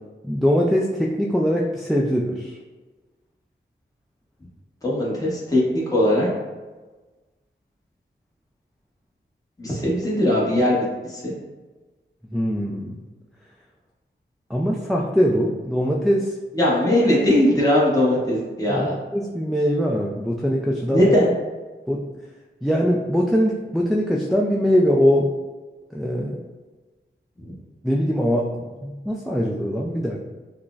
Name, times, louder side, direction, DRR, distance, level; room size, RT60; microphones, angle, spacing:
voice 1, 0.2-2.6 12.3-12.9 14.5-16.4 18.7-21.1 21.9-22.0 22.6-25.3 25.9-26.4 27.8-30.3, equal, ahead, -1 dB, 0.3 m, -22 dB
voice 2, 4.8-6.3 9.6-10.8 11.1-11.3 16.6-19.0 20.9-21.3, left 1 dB, 15° left, -5 dB, 0.9 m, -19 dB
5.6 x 2.0 x 2.4 m, 1.3 s
wide cardioid pair, 75°, 20 cm